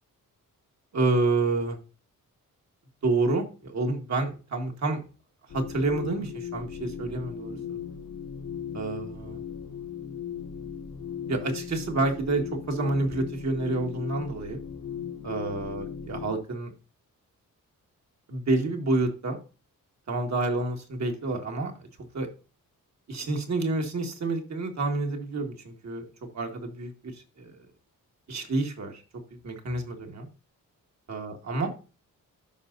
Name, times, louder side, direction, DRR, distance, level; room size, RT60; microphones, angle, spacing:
voice 1, 0.9-1.8 3.0-5.0 5.5-7.8 8.7-9.4 11.3-14.6 15.2-16.7 18.3-19.4 20.1-21.9 22.1-22.3 23.1-26.1 26.3-27.1 27.4-27.6 28.3-29.0 29.4-30.3 31.1-31.7, right 3 dB, 50° right, 4 dB, 1.9 m, -28 dB
sound 1, 5.5-16.4, left 8 dB, 60° left, 0.9 m, -38 dB
13.5 x 5.7 x 2.6 m, 0.35 s
wide cardioid pair, 140°, 34 cm